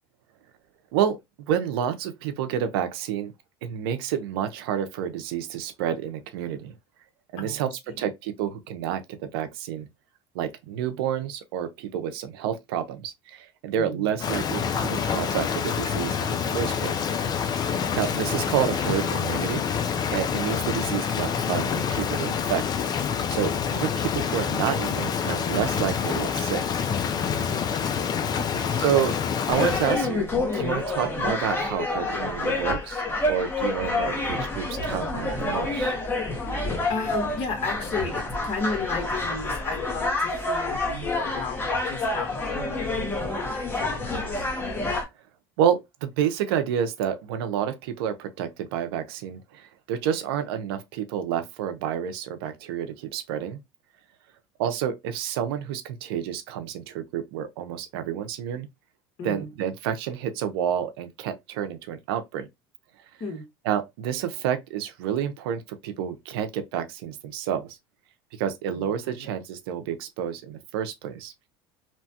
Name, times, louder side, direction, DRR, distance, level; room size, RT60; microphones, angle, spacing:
voice 1, 0.9-3.3 3.6-6.7 7.3-9.9 10.3-17.0 17.9-19.6 20.1-22.6 23.3-26.6 28.8-29.2 29.5-30.3 30.5-36.0 45.6-53.6 54.6-58.7 59.2-62.5 63.6-67.8 68.4-71.3, right 9 dB, 90° right, 0.6 m, -29 dB
voice 2, 7.4-8.0 13.8-14.1 17.9-18.2 27.5-28.7 36.9-44.5 59.2-59.5 63.2-63.4 68.7-69.3, left 4 dB, 50° left, 1.4 m, -35 dB
Rain, 14.2-30.0, left 7 dB, 35° left, 0.4 m, -27 dB
sound 1, 29.5-45.0, left 2 dB, 15° left, 0.9 m, -28 dB
2.9 x 2.2 x 2.7 m
supercardioid pair, 110°, 12 cm